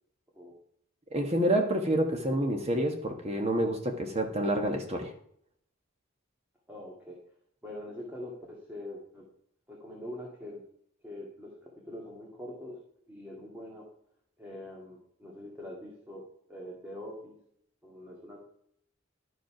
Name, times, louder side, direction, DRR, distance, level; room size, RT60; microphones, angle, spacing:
voice 1, 1.1-5.1, right 1 dB, 30° right, 4 dB, 1.3 m, -28 dB
voice 2, 6.7-7.2 7.6-9.3 9.7-10.7 11.0-12.8 13.1-13.9 14.4-17.4 17.8-18.4, left 1 dB, 10° right, -3 dB, 2.1 m, -44 dB
12.0 x 5.4 x 6.0 m, 0.67 s
head